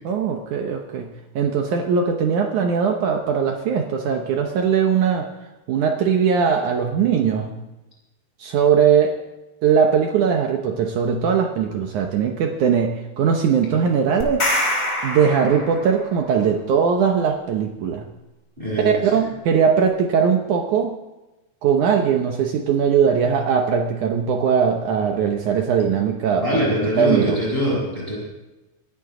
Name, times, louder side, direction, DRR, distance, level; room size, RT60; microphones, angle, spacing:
voice 1, 0.0-5.3 5.7-7.6 8.4-9.2 9.6-14.5 15.0-18.1 18.8-21.0 21.6-27.4, right 7 dB, 80° right, 3 dB, 1.7 m, -20 dB
sound 1, 14.2-16.2, left 1 dB, 25° left, 2.4 m, -24 dB
voice 2, 18.6-19.1 26.4-28.2, equal, 10° right, -5 dB, 6.1 m, -23 dB
24.5 x 11.5 x 3.8 m, 1.0 s
omnidirectional pair, 4.9 m